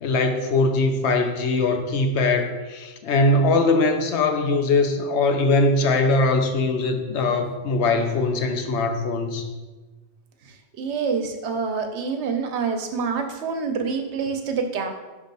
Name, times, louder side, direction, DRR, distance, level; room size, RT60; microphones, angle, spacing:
voice 1, 0.0-9.4, left 2 dB, 75° left, 6 dB, 0.9 m, -21 dB
voice 2, 10.4-14.9, right 5 dB, 75° right, 5 dB, 1.0 m, -27 dB
5.3 x 3.4 x 5.2 m, 1.2 s
omnidirectional pair, 1.2 m